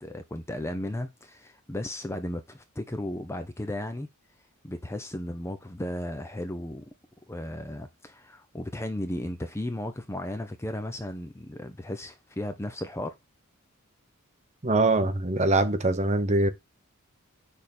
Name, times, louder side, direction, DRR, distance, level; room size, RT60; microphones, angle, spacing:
voice 1, 0.0-4.1 4.6-6.8 7.3-13.1, left 1 dB, 10° left, 0.5 m, -35 dB
voice 2, 14.6-16.5, right 2 dB, 30° right, 0.8 m, -23 dB
6.4 x 3.6 x 4.2 m
head